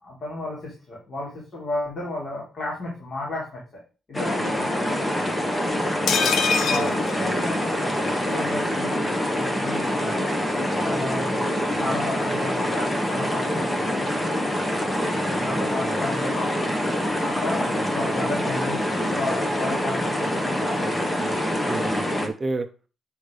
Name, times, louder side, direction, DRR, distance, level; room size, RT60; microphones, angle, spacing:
voice 1, 0.0-3.8 4.1-4.9 5.9-6.1 6.6-10.3 10.8-11.5 11.8-14.3 15.4-21.3, left 2 dB, 45° left, -5 dB, 3.9 m, -33 dB
sound 1, 4.1-22.3, equal, 15° left, 1.4 m, -25 dB
sound 2, 6.1-8.0 8.3-8.4 8.7-8.8, left 6 dB, 65° left, 0.8 m, -25 dB
voice 2, 6.2-6.9 11.0-11.1 15.6-16.0 17.6-17.8 21.6-22.7, right 3 dB, 25° right, 6 dB, 0.7 m, -32 dB
9.1 x 4.3 x 5.0 m, 0.34 s
cardioid pair, 115°, 0 cm